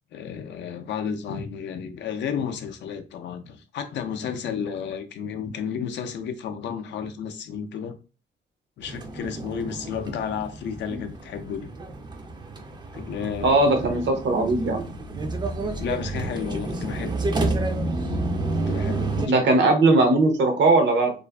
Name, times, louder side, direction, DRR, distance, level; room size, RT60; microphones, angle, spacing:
voice 1, 0.1-8.0 8.8-11.7 12.9-13.7 15.8-17.2 18.7-19.6, left 7 dB, 65° left, 0.4 m, -32 dB
sound 1, 8.8-19.3, right 2 dB, 20° right, 0.4 m, -30 dB
voice 2, 13.4-14.9 19.3-21.1, right 2 dB, 65° right, 0.7 m, -19 dB
2.4 x 2.4 x 2.2 m
cardioid pair, 90°, 20 cm